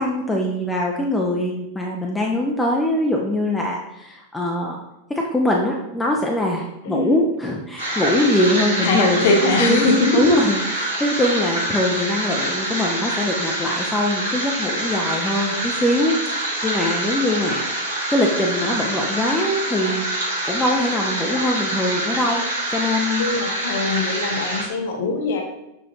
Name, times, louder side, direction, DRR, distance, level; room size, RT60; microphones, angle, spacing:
voice 1, 0.0-4.8 5.1-9.3 9.6-9.9 10.1-17.7 18.1-20.0 20.4-22.4 22.7-23.3, left 1 dB, 10° left, -1 dB, 0.5 m, -22 dB
voice 2, 6.8-7.2 8.8-10.1 17.2-17.3 23.2-25.4, left 3 dB, 50° left, 2 dB, 0.9 m, -21 dB
sound 1, 7.8-24.6, right 1 dB, 80° right, 1.2 m, -26 dB
6.8 x 2.5 x 2.9 m, 0.89 s
figure-of-eight pair, 90°, 0 cm